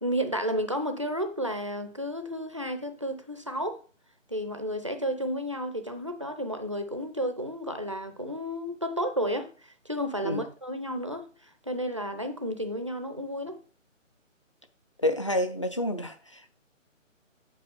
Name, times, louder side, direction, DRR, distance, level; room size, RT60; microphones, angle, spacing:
voice 1, 0.0-3.8 4.3-13.6, equal, 25° right, 0.5 m, -32 dB
voice 2, 15.0-16.5, left 1 dB, 25° left, 0.5 m, -29 dB
8.5 x 4.8 x 5.2 m
figure-of-eight pair, 155°, 40 cm